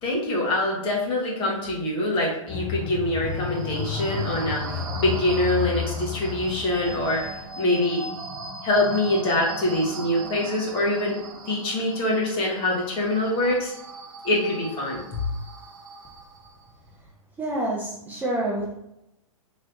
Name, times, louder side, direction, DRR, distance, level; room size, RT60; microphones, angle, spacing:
voice 1, 0.0-4.7 5.0-7.3 7.6-8.0 8.6-11.1 11.5-13.7 14.2-15.0, left 1 dB, 30° left, -2 dB, 1.4 m, -24 dB
sound 1, 2.5-7.5, left 6 dB, 50° left, 0.7 m, -32 dB
sound 2, 3.3-16.7, right 3 dB, 70° right, 0.9 m, -39 dB
voice 2, 17.4-18.7, right 1 dB, 10° right, -5 dB, 0.6 m, -27 dB
3.1 x 3.0 x 4.0 m, 0.85 s
hypercardioid pair, 115°, 18 cm